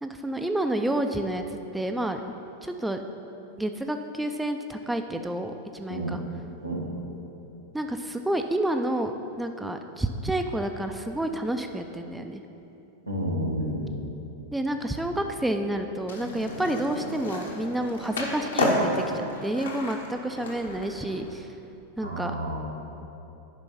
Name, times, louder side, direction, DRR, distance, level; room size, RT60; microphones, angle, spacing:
voice 1, 0.0-1.4 1.7-2.2 2.6-3.0 3.6-6.2 7.7-12.4 14.5-21.5 22.0-22.3, right 1 dB, 5° right, 6 dB, 0.4 m, -29 dB
voice 2, 13.1-13.9 22.0-22.6, right 1 dB, 90° right, -2 dB, 1.2 m, -30 dB
Skateboard, 16.1-21.3, left 1 dB, 70° left, 1.2 m, -31 dB
9.2 x 5.3 x 5.5 m, 2.8 s
figure-of-eight pair, 90°, 0 cm